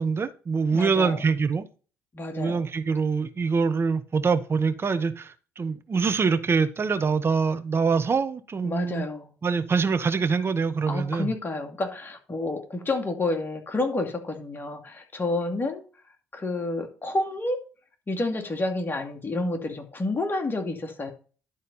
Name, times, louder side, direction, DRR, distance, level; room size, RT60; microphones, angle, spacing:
voice 1, 0.0-1.6 2.3-9.1 9.4-11.3, right 5 dB, 40° right, 1.1 m, -24 dB
voice 2, 0.7-1.2 2.1-2.7 8.6-9.3 10.9-15.8 16.3-17.6 18.1-21.1, left 2 dB, 35° left, 2.5 m, -29 dB
11.5 x 4.2 x 5.4 m
hypercardioid pair, 50°, 6 cm